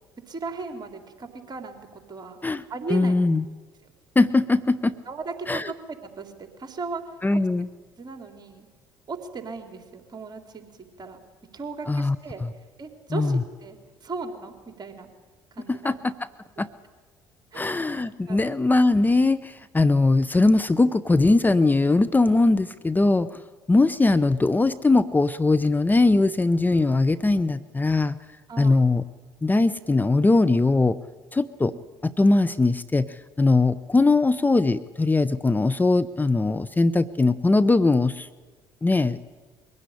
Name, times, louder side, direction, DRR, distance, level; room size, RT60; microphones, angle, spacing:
voice 1, 0.3-1.8 2.1-2.4 2.7-3.1 3.8-3.9 5.1-5.7 6.2-7.2 8.0-8.7 9.1-11.2 11.5-12.5 12.8-15.1 15.5-16.0 17.5-17.8 18.3-18.4 28.5-28.8 31.7-31.8, right 4 dB, 40° right, 5 dB, 3.9 m, -37 dB
voice 2, 2.9-3.4 4.2-4.9 5.5-5.7 7.2-7.7 11.9-12.2 13.1-13.4 15.7-16.1 16.6-16.7 17.5-23.4 23.7-28.2 28.6-29.0 29.4-31.0 31.3-31.7 32.0-38.3 38.8-39.2, left 3 dB, 15° left, 12 dB, 0.8 m, -20 dB
22.5 x 16.5 x 10.0 m, 1.4 s
hypercardioid pair, 55°, 11 cm